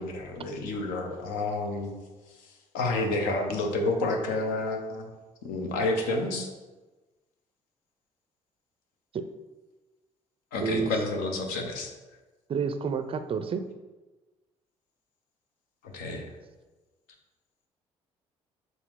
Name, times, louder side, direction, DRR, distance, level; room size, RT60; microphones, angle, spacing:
voice 1, 0.0-1.9 2.7-5.1 5.4-6.5 10.5-11.9 15.8-16.2, left 2 dB, 65° left, 3 dB, 0.9 m, -29 dB
voice 2, 10.6-10.9 12.5-13.7, right 6 dB, 35° right, 9 dB, 0.5 m, -29 dB
7.0 x 4.0 x 3.6 m, 1.2 s
figure-of-eight pair, 45°, 16 cm